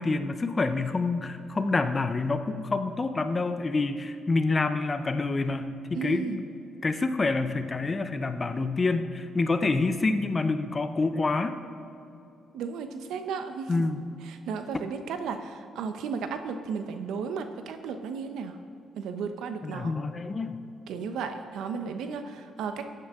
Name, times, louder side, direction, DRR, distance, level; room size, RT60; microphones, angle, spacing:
voice 1, 0.0-6.4 6.8-11.5 13.7-14.0 19.6-20.6, left 3 dB, 30° left, 9 dB, 0.7 m, -27 dB
voice 2, 5.9-6.4 12.5-13.7 14.3-18.6 19.0-19.9 20.9-22.9, right 6 dB, 85° right, 8 dB, 0.9 m, -34 dB
14.0 x 9.7 x 3.7 m, 2.7 s
cardioid pair, 90°, 0 cm